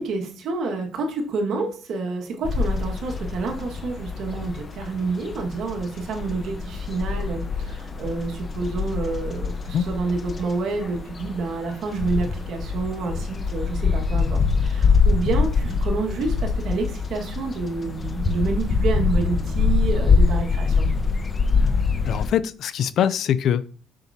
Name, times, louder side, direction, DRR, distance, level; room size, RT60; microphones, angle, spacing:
voice 1, 0.0-20.9, right 3 dB, 65° right, 1.7 m, -28 dB
sound 1, 2.4-22.3, left 4 dB, 35° left, 0.9 m, -24 dB
voice 2, 22.0-23.7, left 9 dB, 65° left, 0.4 m, -23 dB
7.0 x 6.1 x 2.8 m
supercardioid pair, 85°, 0 cm